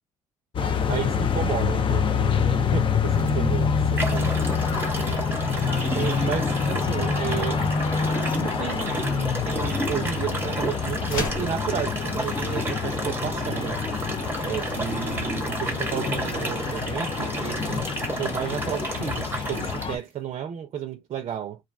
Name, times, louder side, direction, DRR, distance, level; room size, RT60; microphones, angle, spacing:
sound 1, 0.5-20.0, left 5 dB, 40° left, 0.5 m, -26 dB
voice 1, 0.9-4.3 5.9-7.6 8.3-13.9 14.4-17.9 18.2-21.6, right 9 dB, 50° right, 0.5 m, -32 dB
sound 2, 3.2-3.3 4.0-19.9, right 1 dB, 15° right, 0.8 m, -32 dB
sound 3, 11.0-11.6, left 2 dB, 80° left, 1.0 m, -30 dB
2.4 x 2.2 x 2.4 m
supercardioid pair, 70°, 13 cm